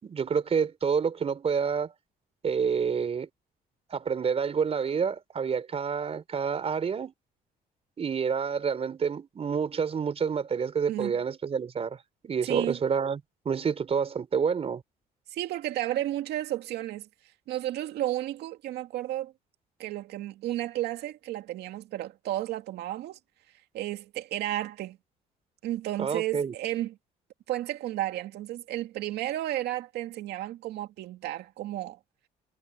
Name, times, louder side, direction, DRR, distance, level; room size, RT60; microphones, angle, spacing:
voice 1, 0.0-1.9 2.4-3.3 3.9-7.1 8.0-12.0 12.2-14.8 26.0-26.5, right 6 dB, 35° right, 4.2 m, -28 dB
voice 2, 12.4-12.8 15.3-17.1 17.5-19.3 19.8-23.2 23.7-25.0 25.6-27.0 27.5-32.0, right 14 dB, 75° right, 2.3 m, -32 dB
cardioid pair, 110°, 17 cm